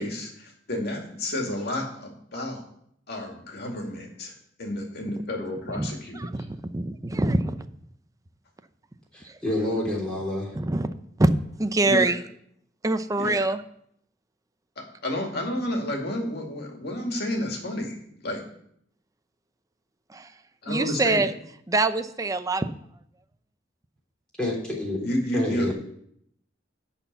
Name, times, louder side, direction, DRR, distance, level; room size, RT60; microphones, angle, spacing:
voice 1, 0.0-2.6 3.1-4.3 4.6-6.2 11.8-12.1 13.2-13.4 15.0-18.4 20.6-21.2 25.0-25.7, left 1 dB, 60° left, 1 dB, 2.3 m, -30 dB
voice 2, 6.1-7.6 9.2-9.7 10.5-10.9 11.2-11.3 11.6-12.2 12.8-13.6 20.1-20.3 20.7-21.3 21.7-22.7, right 2 dB, 20° right, 10 dB, 0.6 m, -24 dB
voice 3, 9.1-10.5 24.4-25.0 25.3-25.7, left 1 dB, 5° left, -4 dB, 3.4 m, -28 dB
11.5 x 4.3 x 8.1 m, 0.69 s
head